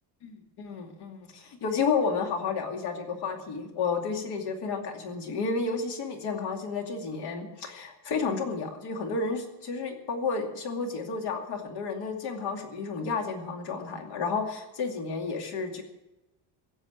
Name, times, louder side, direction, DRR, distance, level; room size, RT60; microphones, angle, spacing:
voice 1, 0.2-15.8, left 4 dB, 55° left, 4 dB, 2.5 m, -31 dB
16.5 x 7.2 x 8.7 m, 0.97 s
cardioid pair, 165°, 47 cm